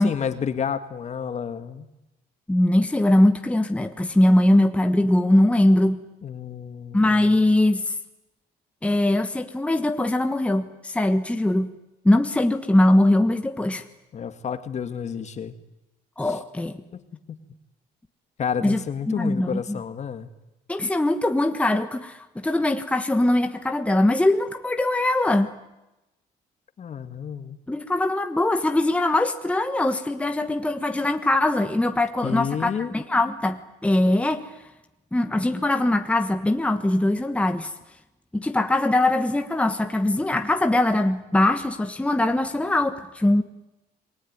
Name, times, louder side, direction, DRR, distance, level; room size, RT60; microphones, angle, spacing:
voice 1, 0.0-1.9 6.2-7.4 14.1-15.5 16.2-16.4 16.9-17.0 17.3-17.4 18.4-20.3 26.8-27.6 32.2-32.9, left 7 dB, 40° left, 2.0 m, -30 dB
voice 2, 2.5-6.0 6.9-7.9 8.8-11.7 12.0-13.8 16.2-16.8 18.6-18.8 19.1-19.8 20.7-25.5 27.7-34.5 35.1-37.7 38.3-43.4, left 1 dB, 5° left, 1.3 m, -21 dB
28.0 x 20.5 x 9.7 m
cardioid pair, 110°, 17 cm